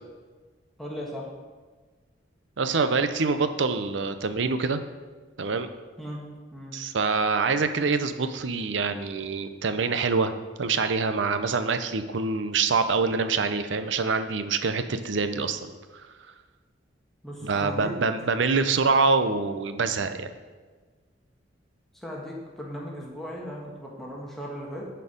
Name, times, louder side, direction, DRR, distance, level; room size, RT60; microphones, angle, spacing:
voice 1, 0.8-1.3 6.0-6.2 6.5-6.7 17.2-17.9 21.9-24.9, equal, ahead, -4 dB, 1.4 m, -37 dB
voice 2, 2.6-4.8 5.4-5.7 6.7-10.3 10.6-16.3 17.4-20.3, right 4 dB, 75° right, 9 dB, 0.6 m, -25 dB
10.5 x 4.5 x 5.1 m, 1.4 s
head